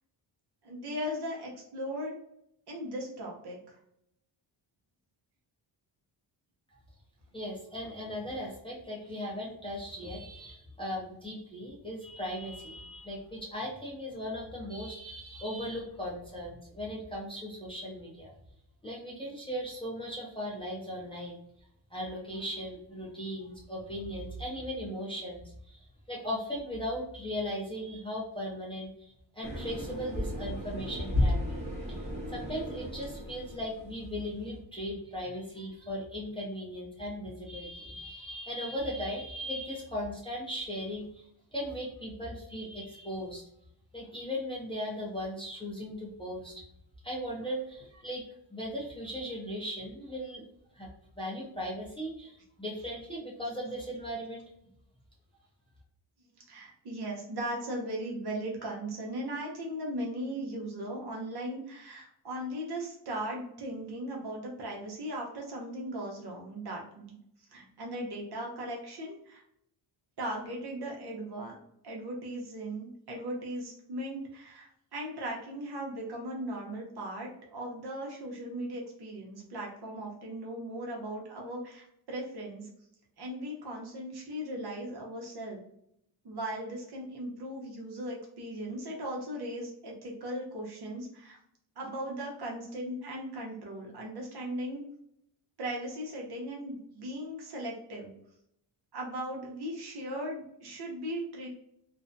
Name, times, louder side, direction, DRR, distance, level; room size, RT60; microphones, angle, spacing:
voice 1, 0.6-2.1 2.7-3.8 56.5-67.2 67.5-69.4 70.2-71.5 71.8-82.7 83.2-85.6 86.2-91.4 91.8-94.8 95.6-98.1 98.9-101.5, right 1 dB, 55° right, -1 dB, 0.8 m, -38 dB
voice 2, 7.3-18.3 18.8-21.4 21.9-31.6 31.9-43.4 43.9-46.6 47.0-48.2 48.5-50.4 50.7-50.9 51.1-54.4, equal, 10° left, -5 dB, 0.5 m, -38 dB
sound 1, 29.4-34.0, left 1 dB, 20° right, 1.0 m, -33 dB
2.5 x 2.1 x 2.5 m, 0.74 s
wide cardioid pair, 135°, 48 cm